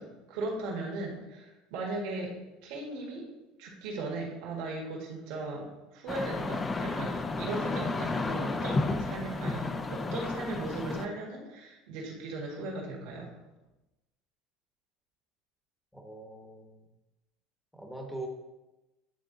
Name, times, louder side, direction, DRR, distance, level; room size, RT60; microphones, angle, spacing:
voice 1, 0.0-2.3 2.6-3.3 3.6-13.3, right 2 dB, 70° right, -2 dB, 1.8 m, -37 dB
sound 1, 6.1-11.1, left 3 dB, 20° left, 0.4 m, -32 dB
voice 2, 15.9-16.8 17.7-18.3, right 2 dB, 5° left, 2 dB, 1.0 m, -42 dB
9.3 x 3.5 x 4.0 m, 1.0 s
cardioid pair, 135°, 0 cm